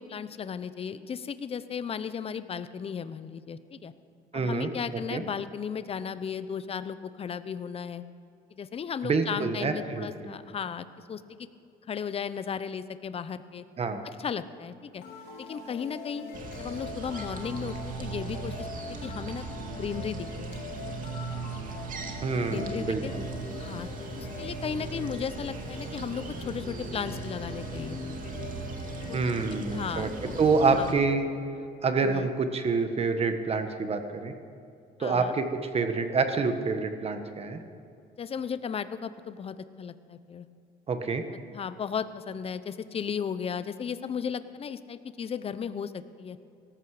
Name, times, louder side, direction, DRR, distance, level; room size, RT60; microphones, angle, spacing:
voice 1, 0.0-3.9 4.3-8.0 8.6-11.4 11.9-13.6 14.2-15.0 15.4-16.2 16.6-18.7 19.0-19.4 19.8-20.5 22.5-23.1 23.6-23.9 24.2-28.0 29.1-29.5 29.7-30.4 30.7-30.9 32.0-32.3 35.0-35.3 38.2-40.5 41.5-46.4, left 7 dB, 35° left, 13 dB, 0.8 m, -35 dB
voice 2, 4.3-4.7 5.1-5.2 9.0-10.3 13.8-14.0 22.2-23.2 29.1-30.1 30.4-31.3 31.8-34.3 35.0-35.5 35.7-37.6 40.9-41.2, right 4 dB, 35° right, 7 dB, 1.4 m, -27 dB
sound 1, 15.0-31.0, left 4 dB, 85° left, 3.3 m, -43 dB
sound 2, 16.3-30.9, right 4 dB, 50° right, 2.1 m, -38 dB
18.0 x 14.0 x 5.0 m, 2.6 s
cardioid pair, 110°, 17 cm